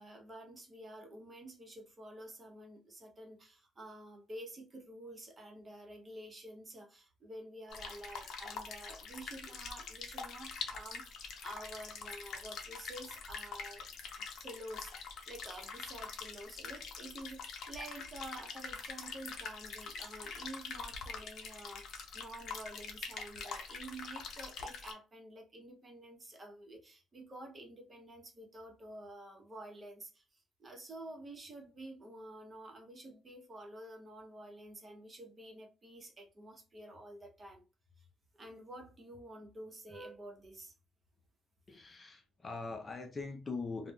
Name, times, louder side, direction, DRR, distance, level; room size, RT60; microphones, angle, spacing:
voice 1, 0.0-13.9 14.4-37.6 38.0-38.1 38.3-40.7, right 1 dB, 30° right, 0.8 m, -50 dB
sound 1, 7.7-24.9, left 5 dB, 70° left, 0.7 m, -44 dB
voice 2, 41.7-43.9, left 3 dB, 30° left, 0.5 m, -42 dB
2.4 x 2.1 x 3.5 m
cardioid pair, 110°, 0 cm